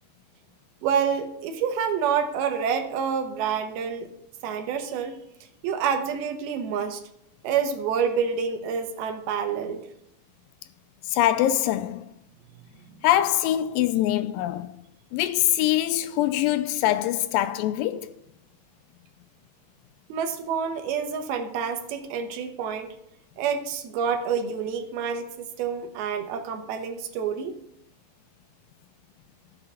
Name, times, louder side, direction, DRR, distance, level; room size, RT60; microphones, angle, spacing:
voice 1, 0.8-4.1 4.4-5.2 5.6-7.0 7.4-9.8 20.1-23.0 23.4-27.5, right 7 dB, 80° right, 3.0 m, -28 dB
voice 2, 11.1-12.0 13.0-14.7 15.1-18.1, left 13 dB, 80° left, 2.1 m, -23 dB
13.5 x 6.6 x 5.6 m
omnidirectional pair, 4.3 m